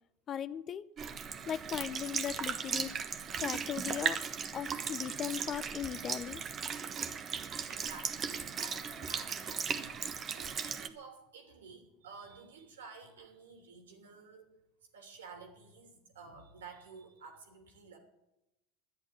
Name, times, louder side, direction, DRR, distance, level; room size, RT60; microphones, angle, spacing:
voice 1, 0.3-0.9 1.5-3.0 3.4-4.2 4.5-6.4, left 9 dB, 40° left, 0.7 m, -38 dB
Sink (filling or washing) / Liquid, 1.0-10.9, right 6 dB, 35° right, 1.2 m, -37 dB
voice 2, 7.7-14.5 14.9-18.0, right 4 dB, 90° right, 2.9 m, -52 dB
11.5 x 9.9 x 9.0 m
hypercardioid pair, 90°, 0 cm